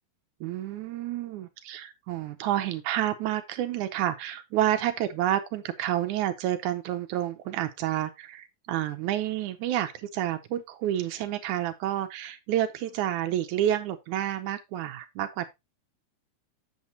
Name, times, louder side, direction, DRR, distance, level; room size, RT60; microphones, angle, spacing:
voice 1, 0.4-15.5, right 12 dB, 80° right, 2.0 m, -29 dB
8.5 x 7.2 x 2.8 m
omnidirectional pair, 3.7 m